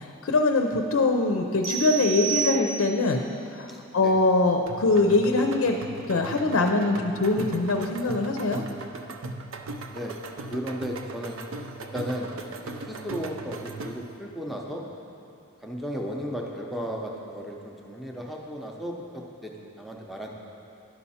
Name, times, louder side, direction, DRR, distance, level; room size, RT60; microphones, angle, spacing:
voice 1, 0.0-3.7 3.9-5.8 6.1-8.6, left 2 dB, 75° left, 3 dB, 0.5 m, -23 dB
sound 1, 1.6-3.2, right 8 dB, 50° right, 0.8 m, -30 dB
voice 2, 3.7-4.2 9.9-10.2 10.5-11.4 11.9-12.4 12.6-14.8 15.6-20.3, equal, ahead, -1 dB, 0.6 m, -35 dB
sound 2, 4.7-14.2, right 3 dB, 70° right, 0.5 m, -38 dB
11.0 x 5.6 x 4.2 m, 2.7 s
head